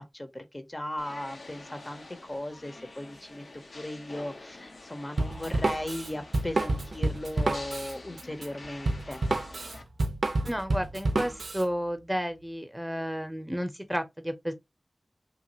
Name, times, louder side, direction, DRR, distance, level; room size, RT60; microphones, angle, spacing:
voice 1, 0.0-9.2, left 1 dB, 35° left, 0.6 m, -37 dB
sound 1, 1.0-9.8, left 2 dB, 85° left, 0.6 m, -47 dB
Drum kit, 5.2-11.6, right 2 dB, 85° right, 0.4 m, -29 dB
voice 2, 10.4-14.5, equal, 10° right, 0.6 m, -32 dB
3.0 x 2.3 x 2.7 m
wide cardioid pair, 45°, 0 cm